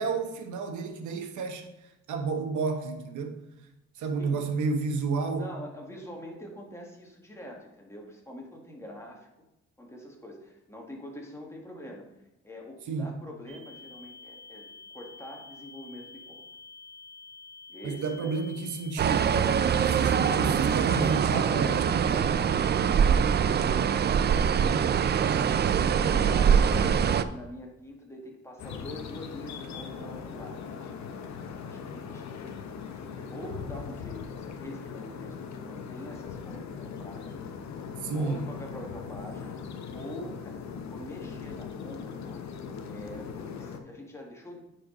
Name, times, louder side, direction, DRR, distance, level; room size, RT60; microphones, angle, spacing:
voice 1, 0.0-1.7 2.1-3.4 4.0-5.5 12.9-13.1 17.8-19.3 19.9-22.3 38.0-38.4, right 4 dB, 75° right, 5 dB, 1.2 m, -31 dB
voice 2, 5.3-9.3 9.8-12.0 12.4-16.4 17.7-18.3 19.7-20.6 21.0-21.5 22.0-24.9 26.0-31.3 31.6-32.7 32.9-37.5 37.8-42.4 42.8-44.6, equal, 10° left, 0 dB, 1.9 m, -44 dB
sound 1, 13.5-21.1, left 4 dB, 20° right, 2.1 m, -48 dB
sound 2, 19.0-27.2, right 7 dB, 35° right, 0.4 m, -23 dB
sound 3, 28.6-43.8, left 6 dB, 65° left, 0.9 m, -40 dB
9.3 x 4.7 x 4.0 m, 0.92 s
cardioid pair, 90°, 30 cm